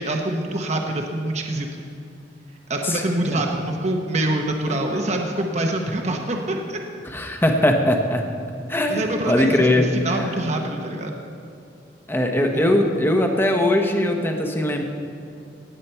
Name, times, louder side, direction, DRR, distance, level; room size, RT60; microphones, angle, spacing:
voice 1, 0.0-1.7 2.7-6.8 8.9-11.1 12.5-12.6, right 1 dB, 40° right, 2 dB, 1.0 m, -25 dB
voice 2, 4.7-5.0 7.0-8.2 8.7-10.3 12.1-14.8, left 1 dB, 15° left, 3 dB, 1.0 m, -21 dB
18.0 x 8.4 x 4.5 m, 2.6 s
head